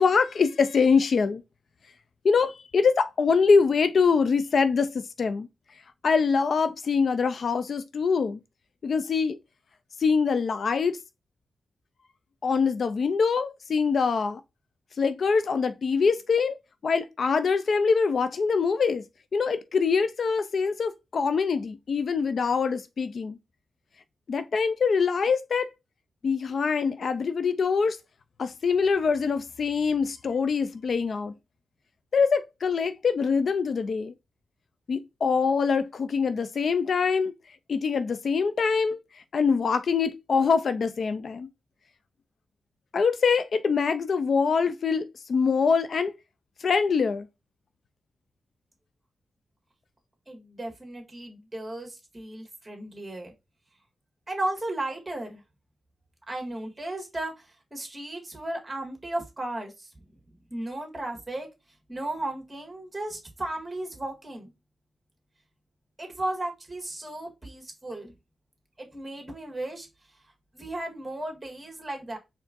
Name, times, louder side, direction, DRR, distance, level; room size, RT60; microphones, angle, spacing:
voice 1, 0.0-1.4 2.2-5.5 6.0-8.4 8.8-9.4 10.0-11.0 12.4-14.4 15.0-16.6 16.8-19.0 19.3-23.4 24.3-25.7 26.2-28.0 28.4-31.3 32.1-34.1 34.9-37.3 37.7-41.5 42.9-46.1 46.6-47.3, left 5 dB, 65° left, 0.3 m, -24 dB
voice 2, 50.3-53.3 54.3-55.4 56.3-59.9 60.5-61.5 61.9-64.5 66.0-68.1 68.8-69.9 70.5-72.2, right 1 dB, 20° right, 1.7 m, -35 dB
4.5 x 3.5 x 2.5 m
cardioid pair, 75°, 0 cm